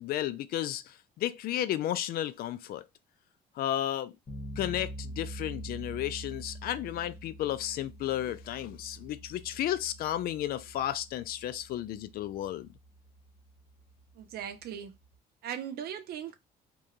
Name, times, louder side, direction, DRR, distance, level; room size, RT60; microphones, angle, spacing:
voice 1, 0.0-2.8 3.6-4.1 4.6-12.7, left 12 dB, 60° left, 0.4 m, -33 dB
sound 1, 4.3-15.2, right 1 dB, 35° left, 0.8 m, -46 dB
voice 2, 14.2-14.9 15.4-16.3, right 9 dB, 65° right, 0.7 m, -38 dB
2.8 x 2.2 x 2.4 m
cardioid pair, 110°, 17 cm